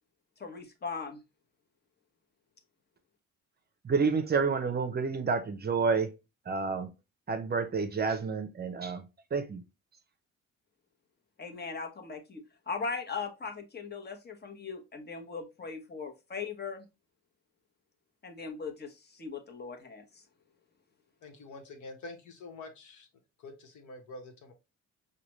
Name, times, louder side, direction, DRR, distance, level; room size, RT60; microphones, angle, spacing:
voice 1, 0.4-1.2 11.4-16.9 18.2-20.2, left 5 dB, 35° left, 1.0 m, -39 dB
voice 2, 3.8-6.1 6.5-6.9 7.3-9.6, right 5 dB, 35° right, 0.6 m, -29 dB
voice 3, 21.2-23.1 23.4-24.5, left 2 dB, 75° left, 1.1 m, -46 dB
4.9 x 2.3 x 3.0 m
cardioid pair, 90°, 30 cm